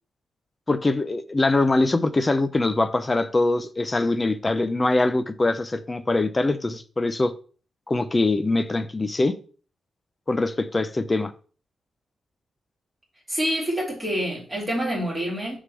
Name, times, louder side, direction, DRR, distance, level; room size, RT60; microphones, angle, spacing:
voice 1, 0.7-7.3 7.9-9.4 10.3-11.3, left 2 dB, 20° left, 0.6 m, -23 dB
voice 2, 13.3-15.6, equal, 15° right, 2.8 m, -27 dB
6.7 x 3.7 x 6.2 m
wide cardioid pair, 135°, 0 cm